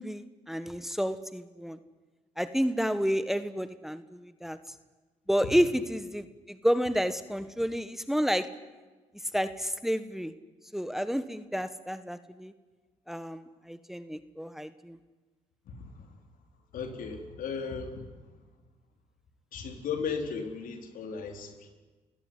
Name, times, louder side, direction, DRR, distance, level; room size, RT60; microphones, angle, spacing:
voice 1, 0.0-1.8 2.4-4.6 5.3-8.5 9.3-10.3 10.7-12.5 13.1-15.0, equal, ahead, 12 dB, 1.5 m, -30 dB
voice 2, 16.7-18.0 19.5-21.7, left 5 dB, 65° left, 6 dB, 4.3 m, -36 dB
30.0 x 17.0 x 9.9 m, 1.3 s
hypercardioid pair, 50°, 15 cm